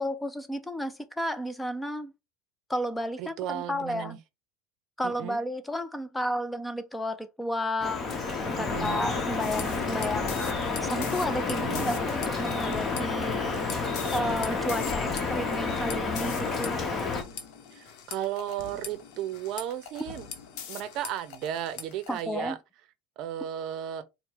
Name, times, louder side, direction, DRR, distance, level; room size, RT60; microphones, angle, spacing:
voice 1, 0.0-2.1 2.7-4.2 5.0-8.3 8.6-13.6 14.1-16.8 22.1-22.6, equal, 10° left, 0.5 m, -32 dB
voice 2, 3.2-4.2 5.0-5.4 8.6-9.1 11.5-11.9 17.7-20.3 20.7-22.6 23.2-24.0, right 11 dB, 60° right, 0.6 m, -35 dB
Drip, 7.8-17.2, left 4 dB, 30° left, 1.1 m, -30 dB
sound 1, 9.4-22.2, left 7 dB, 70° left, 0.8 m, -42 dB
4.2 x 2.1 x 3.7 m
supercardioid pair, 100°, 0 cm